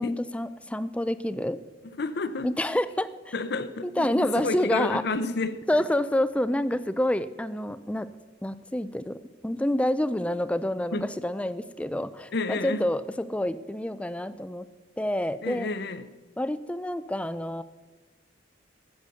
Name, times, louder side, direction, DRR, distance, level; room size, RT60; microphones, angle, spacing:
voice 1, 0.0-1.6 2.4-3.3 3.8-5.0 5.7-8.1 8.4-14.7 15.0-15.7 16.4-17.6, left 1 dB, 5° left, 0.4 m, -28 dB
voice 2, 1.8-2.5 3.3-5.6 10.9-11.0 12.3-12.8 15.4-16.1, left 3 dB, 60° left, 0.7 m, -30 dB
13.0 x 8.1 x 6.8 m
head